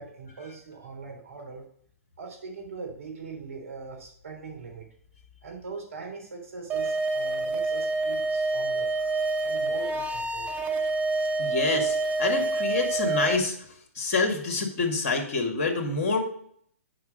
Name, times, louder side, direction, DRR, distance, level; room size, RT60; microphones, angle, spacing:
voice 1, 0.0-1.7 2.2-4.9 5.4-8.9 9.4-10.5, right 4 dB, 65° right, 1 dB, 3.5 m, -41 dB
sound 1, 6.7-13.4, right 3 dB, 20° right, 0.8 m, -27 dB
voice 2, 11.4-13.6 14.0-16.2, left 3 dB, 45° left, 2 dB, 2.2 m, -27 dB
9.3 x 4.9 x 5.3 m, 0.63 s
figure-of-eight pair, 120°, 8 cm